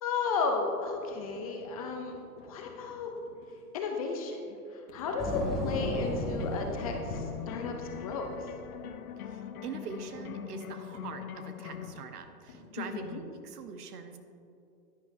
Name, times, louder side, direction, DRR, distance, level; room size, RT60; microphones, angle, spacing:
voice 1, 0.0-3.1 3.7-8.5 12.8-13.2, left 4 dB, 25° left, 2 dB, 0.4 m, -34 dB
sound 1, 0.7-3.6 4.9-8.6 10.1-13.1, left 2 dB, 40° left, 1.4 m, -53 dB
sound 2, 5.2-8.9, left 1 dB, ahead, 2.2 m, -36 dB
sound 3, 5.7-12.0, left 8 dB, 60° left, 0.8 m, -42 dB
voice 2, 9.3-14.2, right 5 dB, 75° right, 7 dB, 1.0 m, -43 dB
10.5 x 10.0 x 2.6 m, 2.7 s
hypercardioid pair, 135°, 47 cm